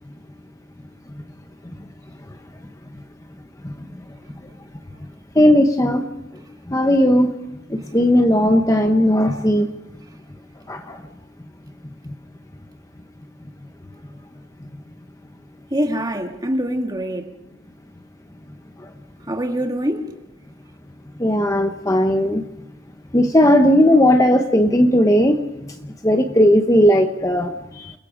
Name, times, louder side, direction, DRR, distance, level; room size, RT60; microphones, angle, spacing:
voice 1, 5.4-6.0 6.7-7.3 7.7-9.7 10.7-11.0 21.2-22.4 23.1-25.4 26.0-27.9, equal, 15° left, 0.9 m, -16 dB
voice 2, 15.7-17.3 19.3-20.1, equal, 20° right, 1.9 m, -24 dB
29.5 x 21.5 x 5.0 m
head